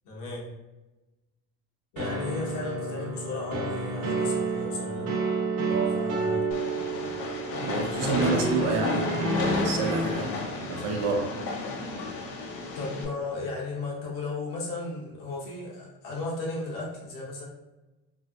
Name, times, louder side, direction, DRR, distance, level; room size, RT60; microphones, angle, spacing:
voice 1, 0.0-0.4 1.9-5.1 5.9-6.4 8.0-8.3 12.7-17.5, left 3 dB, 75° left, -4 dB, 1.2 m, -35 dB
sound 1, 2.0-10.2, right 2 dB, 50° right, 0.7 m, -30 dB
voice 2, 5.7-6.1 7.6-11.4, right 5 dB, 80° right, 1 dB, 0.8 m, -30 dB
Train, 6.5-13.0, left 3 dB, 40° left, 0.5 m, -32 dB
3.3 x 2.6 x 2.4 m, 1.1 s
cardioid pair, 170°, 34 cm